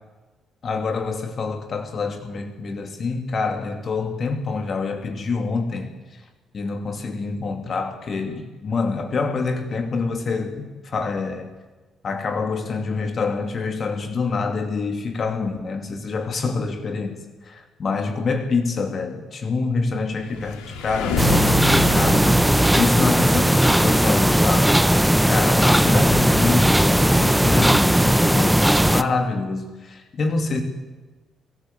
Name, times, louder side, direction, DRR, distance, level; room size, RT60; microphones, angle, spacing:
voice 1, 0.6-5.9 6.5-11.5 12.0-22.3 22.8-24.8 25.3-30.6, left 4 dB, 50° left, 5 dB, 2.4 m, -26 dB
sound 1, 20.1-23.7, left 4 dB, 75° left, 2.6 m, -29 dB
sound 2, 21.2-29.0, right 1 dB, 5° right, 1.1 m, -17 dB
24.5 x 14.0 x 8.2 m, 1.3 s
hypercardioid pair, 40°, 0 cm